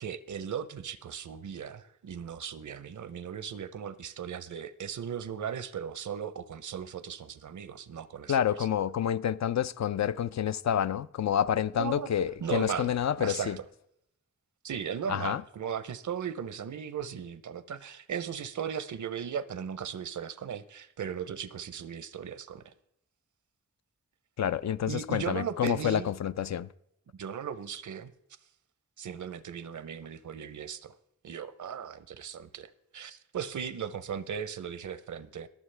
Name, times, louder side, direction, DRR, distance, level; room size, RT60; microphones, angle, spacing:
voice 1, 0.0-8.7 11.7-12.1 12.4-13.7 14.6-22.7 24.9-26.1 27.1-28.1 29.0-31.0 31.2-35.5, right 8 dB, 80° right, 0.6 m, -37 dB
voice 2, 8.3-13.6 15.1-15.4 24.4-26.7, left 9 dB, 65° left, 0.4 m, -28 dB
21.5 x 7.2 x 3.3 m
wide cardioid pair, 75°, 29 cm